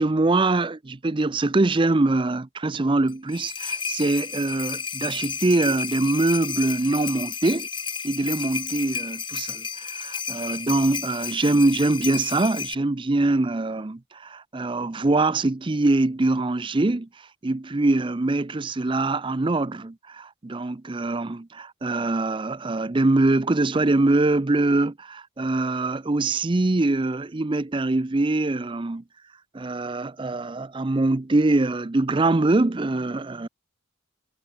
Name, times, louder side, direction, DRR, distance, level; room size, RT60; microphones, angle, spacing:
voice 1, 0.0-7.7 8.0-29.0 29.5-33.5, right 2 dB, 25° right, 0.5 m, -23 dB
sound 1, 3.1-12.7, left 6 dB, 20° left, 4.1 m, -32 dB
head